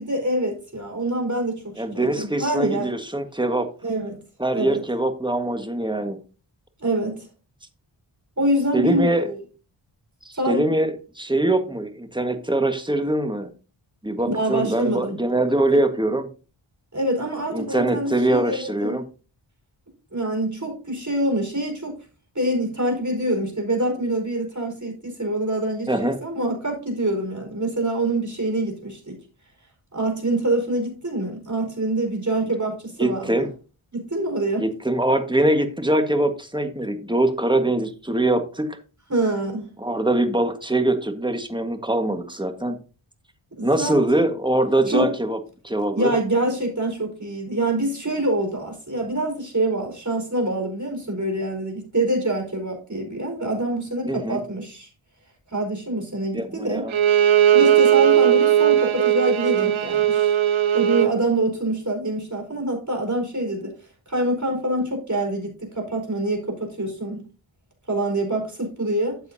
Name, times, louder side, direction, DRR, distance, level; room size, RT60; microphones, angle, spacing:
voice 1, 0.0-2.9 3.8-4.2 4.5-4.8 6.8-7.3 8.4-9.4 10.4-10.7 14.3-15.2 16.9-18.9 20.1-22.0 22.3-29.2 29.9-33.5 33.9-34.7 39.1-39.7 43.6-44.0 44.9-45.1 45.9-54.9 55.5-56.9 57.5-60.3 60.7-63.7 64.1-67.2 67.9-69.2, right 1 dB, 35° right, 2 dB, 4.9 m, -25 dB
voice 2, 1.8-3.7 4.4-6.2 8.7-9.3 10.2-13.5 14.0-16.3 17.5-19.0 25.9-26.2 33.0-33.5 34.6-38.8 39.8-42.8 43.6-45.4 45.6-46.1 54.0-54.4 56.3-56.9, right 1 dB, 10° right, 7 dB, 1.6 m, -23 dB
Bowed string instrument, 56.9-61.2, right 10 dB, 70° right, 0.9 m, -18 dB
12.5 x 7.8 x 2.8 m, 0.35 s
wide cardioid pair, 45°, 49 cm